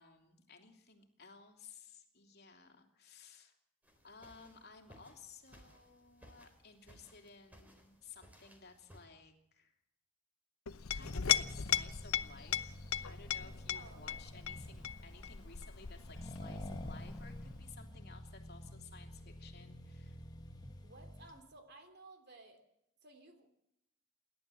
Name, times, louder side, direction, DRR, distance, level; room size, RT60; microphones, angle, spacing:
voice 1, 0.0-3.6 4.0-9.8 10.9-20.2, left 5 dB, 45° left, 4 dB, 2.9 m, -57 dB
sound 1, 3.8-9.0, equal, 5° right, 3.8 m, -61 dB
Chink clink, 10.7-17.8, left 9 dB, 75° left, 0.8 m, -38 dB
Accelerating revving vroom, 11.0-21.4, equal, 20° left, 1.6 m, -49 dB
voice 2, 13.7-14.2 20.8-22.6 23.0-23.5, right 2 dB, 50° right, 7 dB, 3.1 m, -56 dB
28.5 x 12.0 x 7.7 m, 0.81 s
head